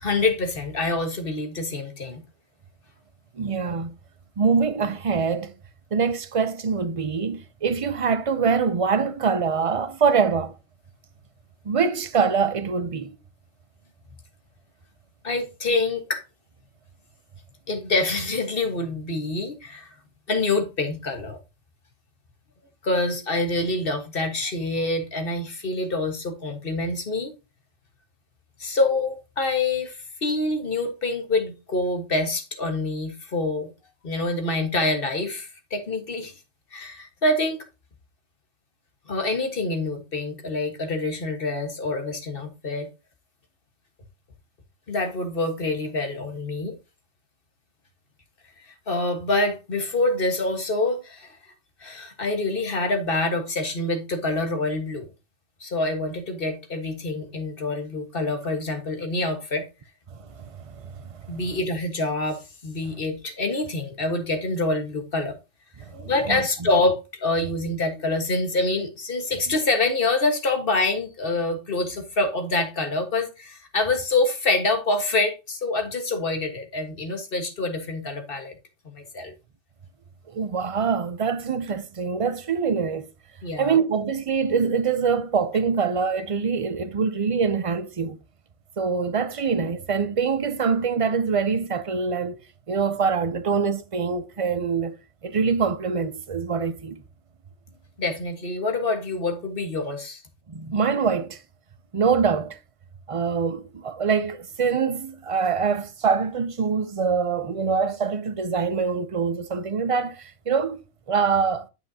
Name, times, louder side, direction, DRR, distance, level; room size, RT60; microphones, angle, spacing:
voice 1, 0.0-2.2 15.2-16.2 17.7-19.9 20.3-21.4 22.8-27.3 28.6-33.7 34.0-36.3 36.7-37.6 39.1-42.9 44.9-46.7 48.9-51.4 51.8-55.1 55.6-59.7 61.3-65.4 65.9-78.5 78.9-79.3 83.4-83.8 98.0-100.2, left 2 dB, 50° left, 1.7 m, -26 dB
voice 2, 3.4-3.9 4.4-5.5 5.9-10.5 11.7-13.2 60.1-61.4 65.9-66.4 80.3-83.1 83.6-88.2 88.8-92.4 92.7-94.9 95.2-97.0 100.5-101.4 101.9-102.6 103.1-110.8 111.1-111.7, right 5 dB, 40° right, 0.5 m, -24 dB
9.0 x 7.6 x 2.8 m
omnidirectional pair, 1.2 m